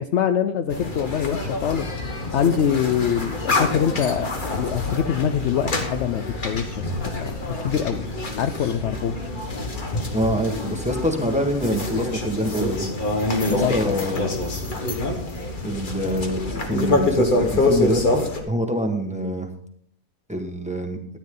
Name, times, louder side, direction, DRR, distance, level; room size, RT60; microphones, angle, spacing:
voice 1, 0.0-8.0 8.4-9.3 13.6-14.4, left 8 dB, 75° left, 10 dB, 0.6 m, -25 dB
sound 1, 0.7-18.4, left 2 dB, 35° left, 1.4 m, -26 dB
voice 2, 10.1-12.9 13.5-14.3 15.6-19.5 20.3-21.0, equal, 5° right, 3 dB, 1.2 m, -25 dB
13.0 x 10.0 x 3.8 m, 0.66 s
omnidirectional pair, 1.7 m